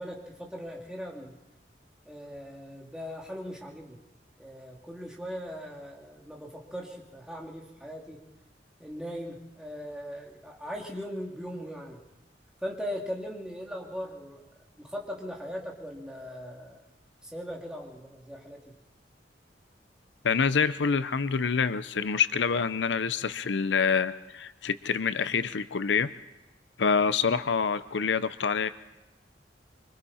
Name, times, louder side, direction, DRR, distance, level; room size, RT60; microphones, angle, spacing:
voice 1, 0.0-1.3 2.0-4.0 4.4-8.2 8.8-12.0 12.6-14.4 14.7-16.8 17.2-18.7, equal, 5° right, -2 dB, 2.8 m, -39 dB
voice 2, 20.2-26.1 26.8-28.7, left 5 dB, 90° left, 14 dB, 0.7 m, -26 dB
25.5 x 24.5 x 4.3 m, 1.0 s
head